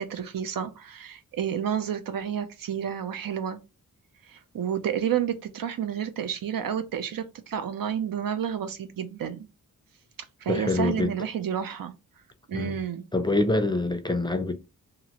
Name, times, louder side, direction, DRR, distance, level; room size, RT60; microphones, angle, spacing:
voice 1, 0.0-3.6 4.2-9.5 10.4-11.9 12.5-13.1, right 9 dB, 80° right, 0.6 m, -30 dB
voice 2, 10.5-11.1 12.5-12.8 13.1-14.5, left 2 dB, 15° left, 0.4 m, -25 dB
2.9 x 2.4 x 2.9 m
wide cardioid pair, 95°, 33 cm